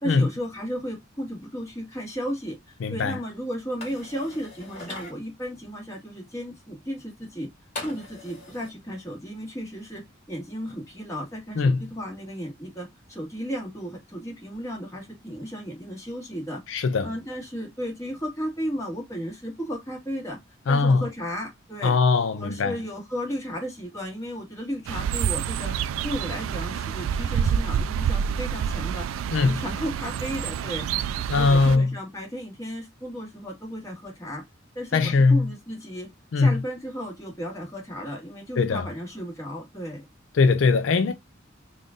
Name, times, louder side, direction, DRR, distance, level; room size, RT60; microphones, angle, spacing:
voice 1, 0.0-7.5 7.8-20.4 20.7-22.0 22.3-25.8 26.0-29.1 29.4-34.4 34.8-36.1 36.4-40.1, equal, 15° left, 1.7 m, -34 dB
voice 2, 2.8-3.2 11.6-11.8 16.7-17.1 20.7-21.1 21.8-22.8 29.3-29.6 31.3-32.0 34.9-35.5 36.3-36.6 38.6-38.9 40.3-41.1, left 4 dB, 70° left, 0.4 m, -21 dB
sound 1, 3.8-5.1 7.8-8.7, left 2 dB, 35° left, 2.0 m, -39 dB
sound 2, 24.9-31.8, right 8 dB, 90° right, 0.3 m, -28 dB
3.6 x 2.5 x 3.7 m
head